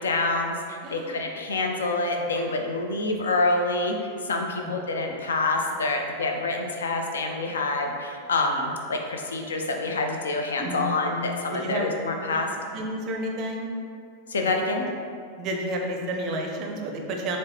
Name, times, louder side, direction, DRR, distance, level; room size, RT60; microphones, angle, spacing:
voice 1, 0.0-12.5 14.3-14.8, left 2 dB, 65° left, 3 dB, 0.3 m, -27 dB
voice 2, 0.8-1.2 2.4-2.5 4.5-4.7 10.6-11.9 12.3-12.4 12.7-13.7 15.4-17.4, right 1 dB, 35° right, 1 dB, 0.5 m, -31 dB
4.5 x 2.1 x 2.7 m, 2.2 s
figure-of-eight pair, 90°, 0 cm